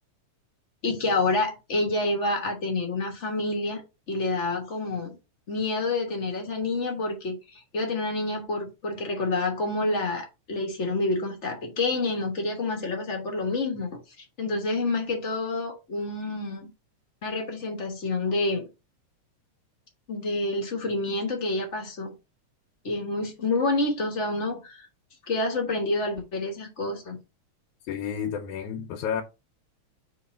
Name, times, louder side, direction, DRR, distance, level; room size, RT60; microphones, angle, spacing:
voice 1, 0.8-5.1 5.5-14.0 14.4-16.7 17.2-18.7 20.1-22.1 22.8-24.9 25.2-27.2, left 2 dB, 50° left, 0.8 m, -28 dB
voice 2, 27.9-29.2, left 8 dB, 85° left, 2.2 m, -31 dB
5.6 x 3.2 x 5.4 m
omnidirectional pair, 3.4 m